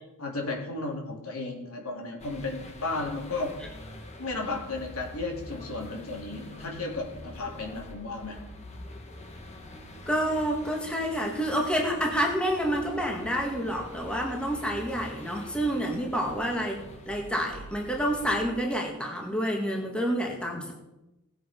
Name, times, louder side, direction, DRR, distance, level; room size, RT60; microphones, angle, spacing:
voice 1, 0.2-3.5 4.2-8.4, left 3 dB, 70° left, 0 dB, 3.5 m, -34 dB
sound 1, 2.2-18.4, left 1 dB, 30° left, 1.7 m, -45 dB
voice 2, 10.1-20.7, equal, 5° left, 0 dB, 2.0 m, -28 dB
17.5 x 7.9 x 5.4 m, 0.98 s
head